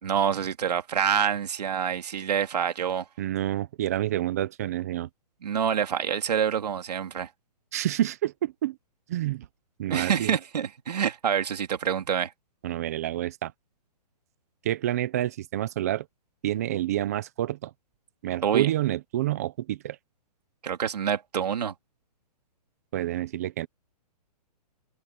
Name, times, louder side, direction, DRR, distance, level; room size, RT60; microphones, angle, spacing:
voice 1, 0.0-3.0 5.4-7.3 9.9-12.3 18.4-18.7 20.6-21.7, right 8 dB, 75° right, 2.6 m, -26 dB
voice 2, 3.2-5.1 7.7-8.8 9.1-9.5 9.8-10.4 12.6-13.5 14.6-16.1 16.4-17.7 18.2-20.0 22.9-23.7, right 13 dB, 25° right, 0.6 m, -28 dB
hypercardioid pair, 175°, 21 cm